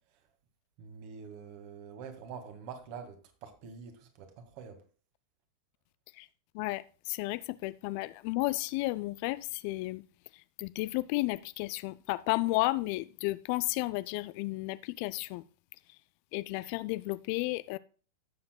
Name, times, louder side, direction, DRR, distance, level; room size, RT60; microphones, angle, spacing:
voice 1, 0.8-4.8, right 6 dB, 45° right, 1.9 m, -46 dB
voice 2, 6.5-10.0 10.6-15.4 16.3-17.8, left 20 dB, 45° left, 0.4 m, -33 dB
16.5 x 7.6 x 2.3 m
figure-of-eight pair, 90°, 0 cm